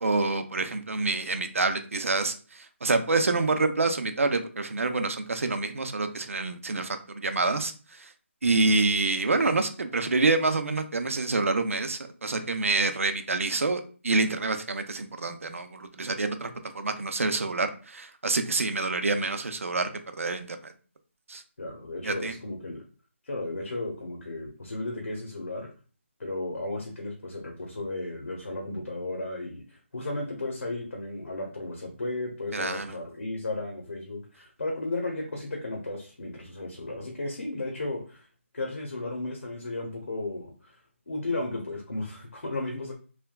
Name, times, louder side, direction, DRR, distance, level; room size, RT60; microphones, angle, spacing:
voice 1, 0.0-8.1 8.4-16.5 16.7-19.9 20.2-20.6 21.3-21.4 22.0-22.3 32.5-33.0, right 3 dB, 90° right, 7 dB, 0.5 m, -27 dB
voice 2, 8.4-8.7 21.6-22.8 23.3-25.7 26.2-38.3 38.5-40.7 41.1-42.9, left 2 dB, 80° left, -1 dB, 0.9 m, -34 dB
3.3 x 2.2 x 2.3 m, 0.38 s
hypercardioid pair, 180°, 7 cm